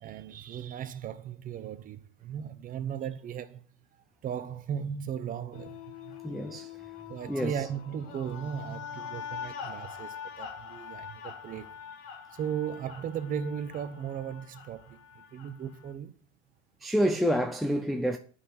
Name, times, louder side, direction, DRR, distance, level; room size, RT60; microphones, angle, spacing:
voice 1, 0.0-3.6 4.2-6.2 7.1-11.7 12.3-16.1, right 8 dB, 25° right, 0.9 m, -37 dB
sound 1, 5.5-15.9, left 7 dB, 40° left, 2.1 m, -44 dB
voice 2, 6.2-6.7 7.3-7.7 16.8-18.2, equal, ahead, 0.4 m, -28 dB
10.0 x 5.9 x 7.7 m
hypercardioid pair, 130°, 35 cm